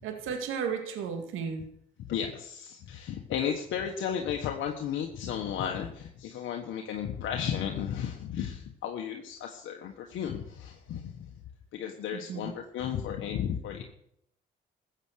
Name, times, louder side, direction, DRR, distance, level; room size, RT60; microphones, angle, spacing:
voice 1, 0.0-1.7 12.1-12.5 13.1-13.2, right 6 dB, 85° right, 5 dB, 2.2 m, -34 dB
voice 2, 2.1-11.3 11.7-13.8, left 8 dB, 75° left, 2 dB, 1.4 m, -34 dB
15.0 x 8.2 x 6.5 m, 0.73 s
supercardioid pair, 70°, 20 cm